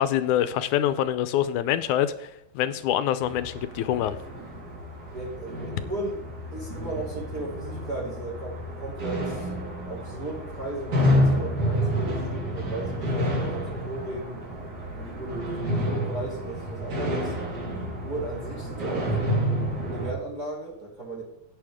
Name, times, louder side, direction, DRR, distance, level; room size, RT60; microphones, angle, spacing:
voice 1, 0.0-4.2, left 11 dB, 75° left, 13 dB, 2.0 m, -25 dB
sound 1, 3.2-20.1, equal, 60° right, 5.1 m, -29 dB
voice 2, 5.1-6.2 6.5-9.5 9.9-14.4 14.9-17.4 18.1-19.3 19.8-21.2, right 2 dB, 30° right, -2 dB, 2.6 m, -36 dB
17.0 x 7.0 x 3.6 m, 0.79 s
omnidirectional pair, 3.7 m